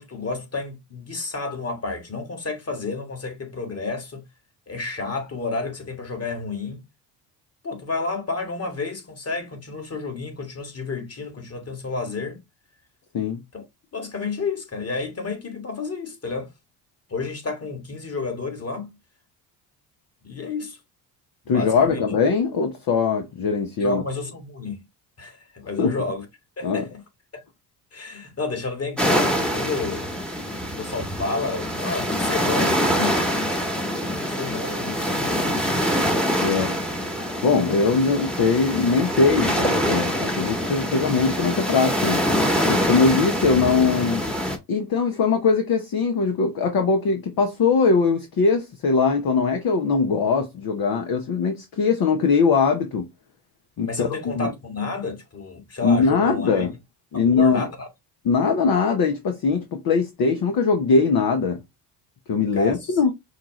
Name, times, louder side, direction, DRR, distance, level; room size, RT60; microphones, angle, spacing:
voice 1, 0.0-4.2 4.7-6.8 7.6-12.4 13.5-13.6 13.9-16.5 17.1-18.9 20.2-20.8 21.5-22.0 23.8-24.8 25.2-26.3 26.6-27.0 27.3-27.4 27.9-30.1 30.8-33.3 34.1-35.7 53.8-56.7 57.1-57.9 62.5-62.9, left 3 dB, 30° left, 1.9 m, -30 dB
voice 2, 21.5-24.0 25.8-26.0 26.6-26.8 36.4-36.8 37.4-42.2 42.7-44.2 44.7-53.1 53.8-54.1 54.4-54.5 55.8-56.7 57.1-57.6 58.2-61.6 62.3-63.1, left 4 dB, 45° left, 1.0 m, -21 dB
sound 1, 29.0-44.6, equal, ahead, 1.2 m, -25 dB
5.7 x 2.4 x 3.0 m
hypercardioid pair, 65°, 49 cm